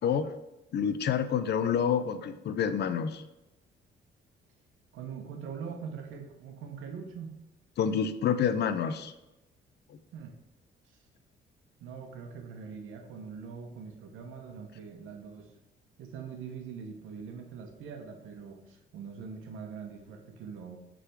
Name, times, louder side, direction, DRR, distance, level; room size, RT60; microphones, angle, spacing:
voice 1, 0.0-0.3 0.7-3.2 7.8-9.1, left 7 dB, 60° left, 10 dB, 0.6 m, -28 dB
voice 2, 4.9-7.3 10.1-10.3 10.8-11.0 11.8-15.5 16.0-20.8, right 6 dB, 90° right, 3 dB, 1.2 m, -43 dB
6.6 x 3.8 x 4.6 m, 0.98 s
cardioid pair, 90°, 20 cm